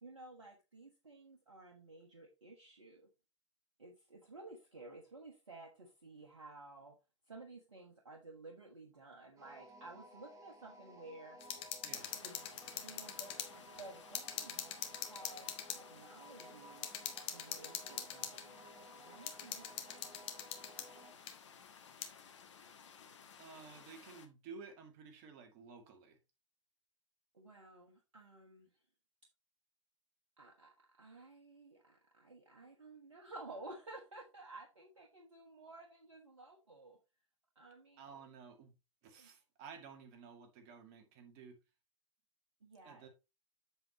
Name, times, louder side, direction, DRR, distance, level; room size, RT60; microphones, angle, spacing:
voice 1, 0.0-3.1 3.8-6.9 7.3-11.4 12.1-12.5 12.7-16.9 17.2-20.1 27.3-28.8 30.4-37.0 37.5-38.2 39.0-39.3 42.6-43.1, right 2 dB, 80° right, 1.5 m, -54 dB
sound 1, 9.4-21.2, right 1 dB, 20° right, 2.3 m, -57 dB
sound 2, 11.4-13.5 13.8-13.9 14.1-15.8 16.4-16.5 16.8-18.4 19.3-20.9 21.3-21.4 22.0-22.1, left 9 dB, 35° left, 1.5 m, -43 dB
voice 2, 11.8-12.2 23.4-26.2 38.0-38.7 39.0-41.6 42.8-43.1, right 5 dB, 45° right, 2.3 m, -54 dB
Rain and distant thunder, 11.9-24.3, left 7 dB, 70° left, 1.4 m, -58 dB
7.9 x 6.8 x 3.0 m
figure-of-eight pair, 100°, 16 cm